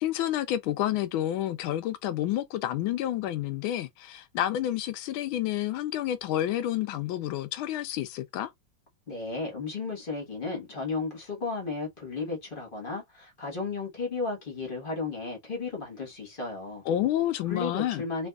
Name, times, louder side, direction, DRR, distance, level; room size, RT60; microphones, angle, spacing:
voice 1, 0.0-8.5 16.9-18.0, left 12 dB, 85° left, 1.4 m, -29 dB
voice 2, 9.1-16.8 17.5-18.3, left 3 dB, 30° left, 1.2 m, -34 dB
3.4 x 3.0 x 2.3 m
omnidirectional pair, 2.2 m